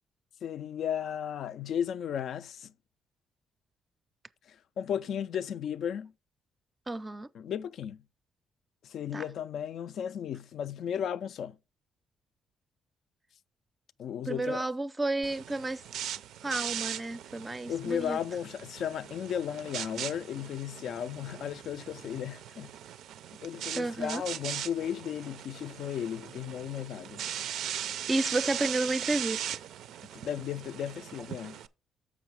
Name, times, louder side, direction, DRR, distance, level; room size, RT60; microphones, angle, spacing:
voice 1, 0.4-2.7 4.5-6.1 7.3-8.0 8.8-11.6 14.0-14.7 17.7-22.7 23.4-27.3 30.1-31.6, left 9 dB, 70° left, 0.3 m, -35 dB
voice 2, 6.9-7.3 9.1-9.2 14.3-15.8 16.4-18.2 23.8-24.2 28.1-29.6, right 2 dB, 20° right, 0.4 m, -31 dB
sound 1, 15.2-31.7, right 10 dB, 80° right, 0.4 m, -39 dB
7.1 x 5.5 x 4.6 m
cardioid pair, 90°, 0 cm